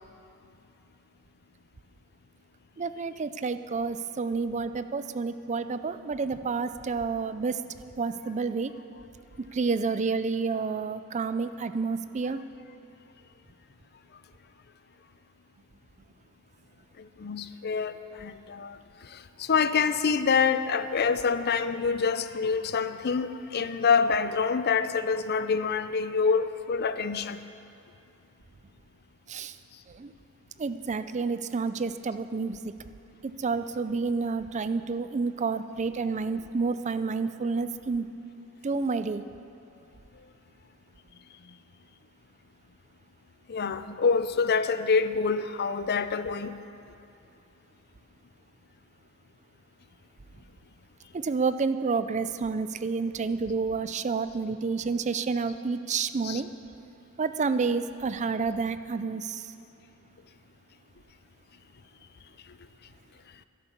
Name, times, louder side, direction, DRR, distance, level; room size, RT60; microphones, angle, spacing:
voice 1, 2.8-7.6 8.0-8.7 9.4-12.4 29.3-29.5 29.9-30.1 30.6-32.7 33.2-38.1 38.6-39.2 51.1-56.5 57.2-59.5, right 4 dB, 35° right, 12 dB, 0.4 m, -29 dB
voice 2, 17.0-27.4 41.5-41.6 43.5-46.6 56.2-56.4, left 5 dB, 50° left, 12 dB, 0.5 m, -26 dB
11.5 x 11.0 x 6.9 m, 2.7 s
head